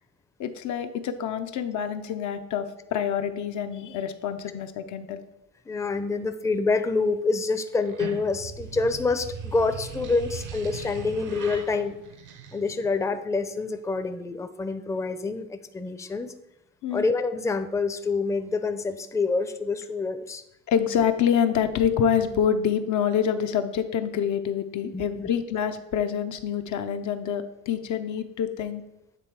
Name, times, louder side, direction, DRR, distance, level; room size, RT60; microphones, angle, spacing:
voice 1, 0.4-5.2 16.8-17.0 20.7-28.8, left 8 dB, 75° left, 7 dB, 0.6 m, -26 dB
voice 2, 5.7-12.0 12.5-16.3 16.9-20.4 24.9-25.3, left 3 dB, 10° left, 9 dB, 0.4 m, -27 dB
sound 1, 7.7-13.1, right 6 dB, 75° right, 0.8 m, -39 dB
8.4 x 3.4 x 4.6 m, 0.88 s
cardioid pair, 90°, 30 cm